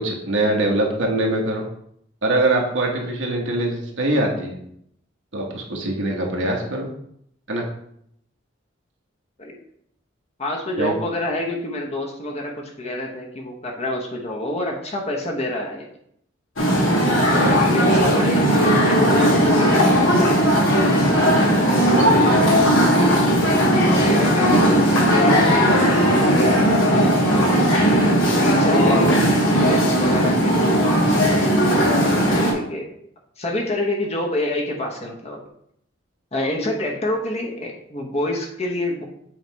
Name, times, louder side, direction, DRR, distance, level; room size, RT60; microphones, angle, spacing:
voice 1, 0.0-1.7 2.2-4.6 5.3-6.9 7.5-7.6 10.8-10.9 17.3-17.6 21.8-22.5, right 1 dB, 70° right, 0 dB, 1.3 m, -23 dB
voice 2, 10.4-15.9 17.4-20.4 23.9-27.8 28.4-32.9 33.4-35.4 36.3-39.0, left 1 dB, 35° left, 0 dB, 1.0 m, -28 dB
sound 1, 16.6-32.5, equal, 85° left, 2.0 m, -17 dB
7.9 x 3.3 x 4.6 m, 0.71 s
head